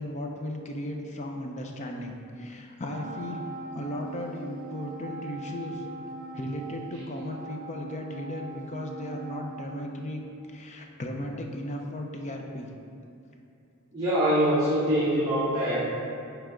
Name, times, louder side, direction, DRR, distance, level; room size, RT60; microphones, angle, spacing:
voice 1, 0.0-3.5 3.7-5.9 6.3-10.2 10.5-12.7, left 1 dB, 30° left, 2 dB, 0.6 m, -36 dB
Wind instrument woodwind instrument, 2.9-10.5, right 2 dB, 40° right, 0.4 m, -41 dB
voice 2, 13.9-15.8, equal, 20° right, -11 dB, 1.0 m, -24 dB
9.4 x 3.3 x 3.8 m, 2.5 s
head